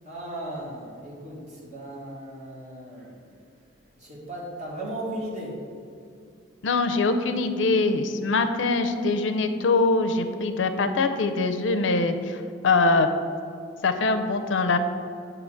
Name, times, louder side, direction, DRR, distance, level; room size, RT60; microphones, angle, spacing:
voice 1, 0.1-3.6 3.9-5.5, right 1 dB, 40° right, -5 dB, 1.8 m, -36 dB
voice 2, 6.6-13.1 13.8-14.8, left 3 dB, 75° left, 8 dB, 0.5 m, -23 dB
8.2 x 2.9 x 6.2 m, 2.3 s
head